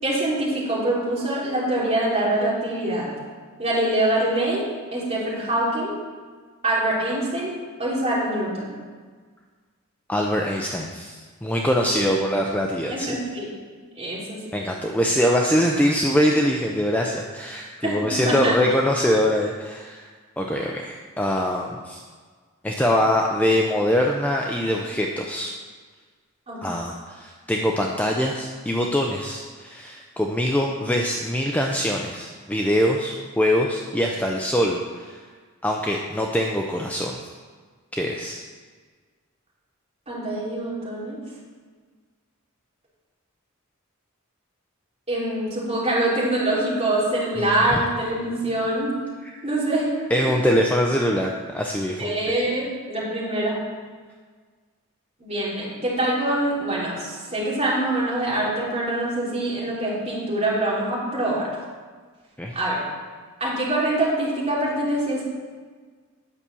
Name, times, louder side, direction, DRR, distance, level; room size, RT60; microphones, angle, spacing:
voice 1, 0.0-3.1 3.6-4.6 4.9-5.9 6.6-7.5 7.8-8.7 11.8-12.3 12.9-13.5 14.0-14.4 17.8-18.5 26.5-26.6 40.1-41.2 45.1-48.9 49.4-50.0 50.3-50.4 52.0-53.6 55.2-61.5 62.5-62.8 63.4-65.2, right 1 dB, 30° right, -7 dB, 3.4 m, -24 dB
voice 2, 10.1-13.2 14.5-20.1 20.4-22.0 22.6-25.5 26.6-35.2 35.6-37.2 37.9-38.4 47.4-47.8 49.3-49.4 50.1-52.1 62.4-62.5, equal, 5° left, 0 dB, 0.5 m, -23 dB
9.9 x 6.0 x 6.9 m, 1.5 s
head